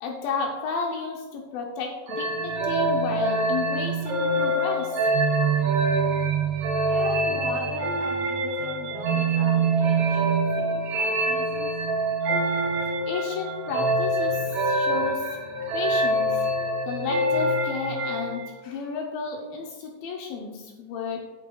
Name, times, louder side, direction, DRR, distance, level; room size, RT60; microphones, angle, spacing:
voice 1, 0.0-5.1 13.1-15.3 15.7-16.5 16.9-21.2, left 5 dB, 85° left, 0 dB, 2.0 m, -32 dB
sound 1, 2.1-18.5, right 2 dB, 90° right, 1.5 m, -25 dB
voice 2, 6.9-11.8, right 2 dB, 65° right, 0 dB, 2.8 m, -39 dB
9.4 x 8.9 x 2.3 m, 1.2 s
omnidirectional pair, 5.2 m